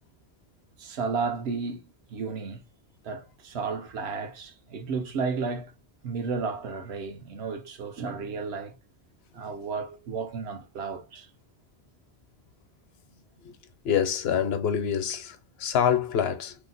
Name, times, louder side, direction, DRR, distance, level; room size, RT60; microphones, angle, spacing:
voice 1, 0.8-1.8 2.1-2.6 3.0-5.7 6.0-8.7 9.3-11.3, right 5 dB, 80° right, 0.9 m, -33 dB
voice 2, 13.8-16.5, left 8 dB, 75° left, 0.8 m, -26 dB
2.8 x 2.1 x 3.8 m
omnidirectional pair, 1.1 m